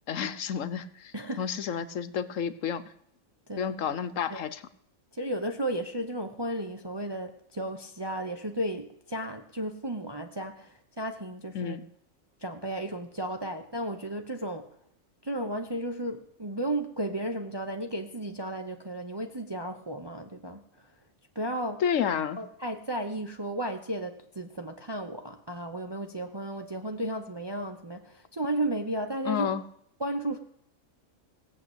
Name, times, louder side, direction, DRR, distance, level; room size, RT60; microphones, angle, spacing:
voice 1, 0.1-1.1 1.4-2.8 3.6-4.6 11.5-11.8 21.8-22.4 29.3-29.6, left 8 dB, 70° left, 14 dB, 1.2 m, -30 dB
voice 2, 1.1-1.8 3.5-3.8 4.3-4.4 5.1-11.8 12.4-14.7 15.2-20.6 21.3-21.8 22.4-29.5 30.0-30.4, right 1 dB, 20° right, 4 dB, 0.9 m, -34 dB
17.5 x 7.6 x 8.1 m, 0.71 s
omnidirectional pair, 1.4 m